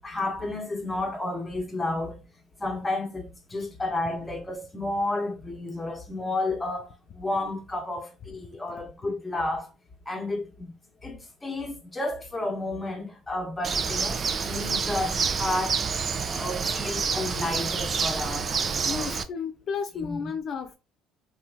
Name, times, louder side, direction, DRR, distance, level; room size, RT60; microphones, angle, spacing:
voice 1, 0.0-2.2 2.6-9.7 10.1-10.7 11.0-15.8 16.4-18.6 18.9-19.1 20.0-20.3, left 2 dB, 15° left, 0.9 m, -31 dB
Bird, 13.6-19.2, right 5 dB, 40° right, 0.3 m, -28 dB
voice 2, 18.8-20.8, left 6 dB, 55° left, 0.3 m, -32 dB
2.9 x 2.3 x 2.5 m
supercardioid pair, 80°, 0 cm